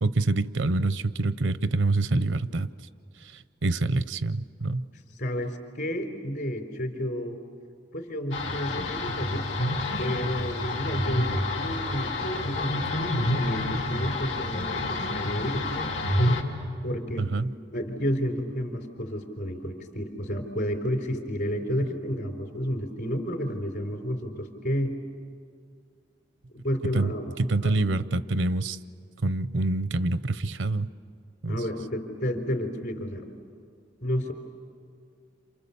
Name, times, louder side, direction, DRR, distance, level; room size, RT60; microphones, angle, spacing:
voice 1, 0.0-2.7 3.2-4.9 17.2-17.5 26.9-27.1 27.4-28.8 29.2-30.9 31.4-31.5, right 2 dB, 85° right, 14 dB, 0.7 m, -26 dB
voice 2, 5.2-7.4 7.9-9.5 10.0-12.1 12.4-15.7 16.8-17.3 17.7-24.9 26.5-27.3 27.6-27.7 31.5-33.3 34.0-34.3, equal, 65° left, 3 dB, 3.8 m, -31 dB
sound 1, 8.3-16.4, left 1 dB, 80° left, 3.0 m, -28 dB
29.5 x 28.0 x 7.1 m, 2.2 s
head